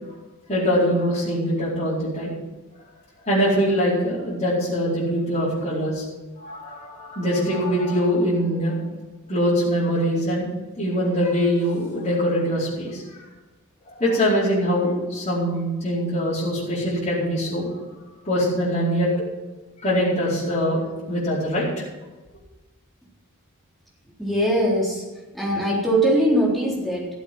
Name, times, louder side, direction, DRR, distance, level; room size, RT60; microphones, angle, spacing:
voice 1, 0.5-2.3 3.2-6.0 6.4-8.7 9.3-10.5 10.8-13.3 13.9-17.7 18.2-19.1 19.8-20.8 21.1-21.8, equal, 30° left, -11 dB, 4.6 m, -23 dB
voice 2, 24.2-25.0 25.3-27.1, right 1 dB, ahead, -5 dB, 3.8 m, -21 dB
14.5 x 8.1 x 7.7 m, 1.1 s
head